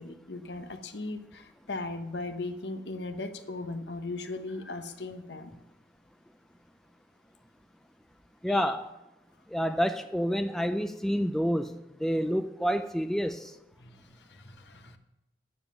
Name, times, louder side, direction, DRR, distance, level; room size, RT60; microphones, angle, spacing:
voice 1, 0.0-5.5 8.5-8.7 13.8-13.9 14.3-15.0, left 2 dB, 80° left, 1.1 m, -38 dB
voice 2, 8.4-8.9 9.5-13.5, equal, ahead, 0.4 m, -28 dB
10.0 x 7.4 x 6.9 m
head